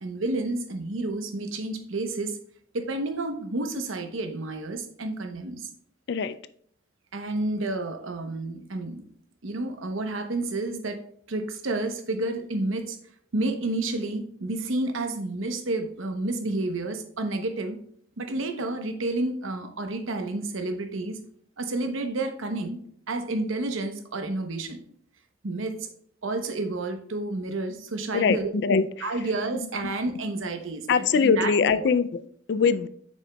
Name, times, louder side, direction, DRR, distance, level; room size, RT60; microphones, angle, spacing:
voice 1, 0.0-2.4 2.7-5.7 7.1-9.0 9.4-11.0 11.3-13.0 13.3-17.8 18.2-21.2 21.6-22.8 23.1-24.8 25.4-25.9 26.2-28.5 29.0-31.9 32.6-32.7, right 2 dB, 90° right, 6 dB, 0.8 m, -30 dB
voice 2, 28.1-29.1 29.8-29.9 30.9-32.9, left 5 dB, 60° left, 14 dB, 0.3 m, -23 dB
7.7 x 6.1 x 2.3 m, 0.62 s
head